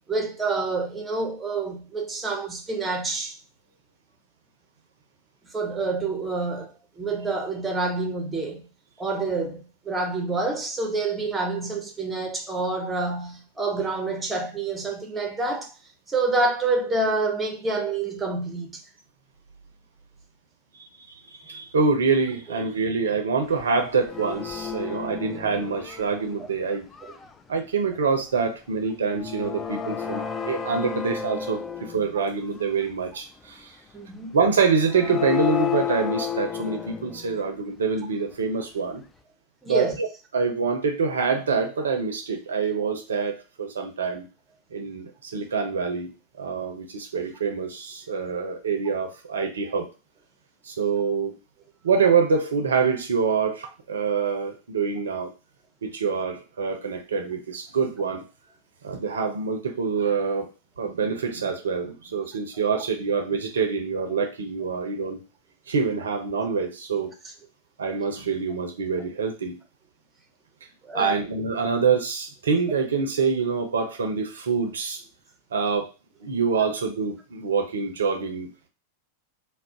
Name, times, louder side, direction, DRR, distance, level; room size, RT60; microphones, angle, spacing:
voice 1, 0.1-3.4 5.5-8.7 9.0-15.7 16.1-18.8 26.4-26.5 27.0-27.1 33.9-34.3 39.6-40.0 70.9-71.2, right 3 dB, 10° right, 0.7 m, -27 dB
voice 2, 20.8-26.9 27.5-33.8 34.3-39.0 39.7-40.1 40.3-44.2 44.7-46.1 46.4-49.9 50.6-51.4 51.8-55.3 55.8-58.3 58.8-60.5 60.8-65.2 65.7-67.1 67.8-69.6 70.9-75.0 75.5-75.9 76.2-78.7, right 5 dB, 65° right, 0.5 m, -26 dB
sound 1, 23.6-23.7 23.9-26.4 26.9-27.3 29.1-32.2 32.6-32.7 34.7-37.4, left 8 dB, 15° left, 0.3 m, -31 dB
2.3 x 2.0 x 3.7 m
figure-of-eight pair, 90°, 0 cm